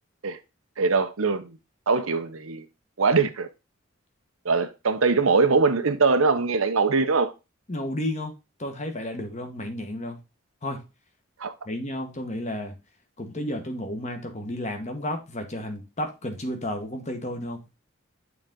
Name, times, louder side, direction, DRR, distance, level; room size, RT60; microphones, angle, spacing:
voice 1, 0.8-1.6 1.9-2.6 3.0-3.5 4.4-7.3 11.4-11.5, right 4 dB, 90° right, 0.8 m, -22 dB
voice 2, 7.7-8.3 8.6-10.2 10.6-10.9 11.6-12.7 13.2-17.6, left 1 dB, 35° left, 1.3 m, -32 dB
8.4 x 3.9 x 3.7 m
head